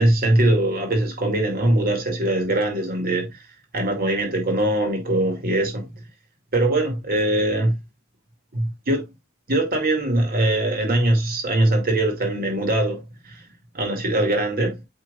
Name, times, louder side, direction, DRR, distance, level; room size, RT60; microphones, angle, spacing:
voice 1, 0.0-3.4 3.7-5.9 6.5-7.8 8.5-9.1 9.5-13.4 13.7-14.8, right 1 dB, 45° right, 2.4 m, -22 dB
8.0 x 5.5 x 2.4 m
head